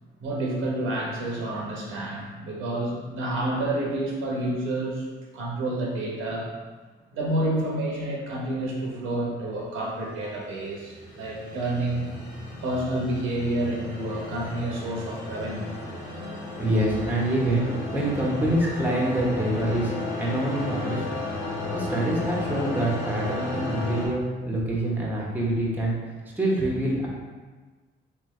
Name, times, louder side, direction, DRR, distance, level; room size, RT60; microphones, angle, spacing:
voice 1, 0.2-5.1 5.3-6.5 7.1-12.1 12.6-15.7, right 1 dB, 85° right, -3 dB, 1.0 m, -29 dB
sound 1, 10.0-24.1, left 2 dB, 65° left, 1.3 m, -34 dB
voice 2, 16.6-21.0 21.7-25.9 26.4-27.1, right 1 dB, 10° right, -4 dB, 1.0 m, -25 dB
3.3 x 3.1 x 3.2 m, 1.3 s
cardioid pair, 90°, 20 cm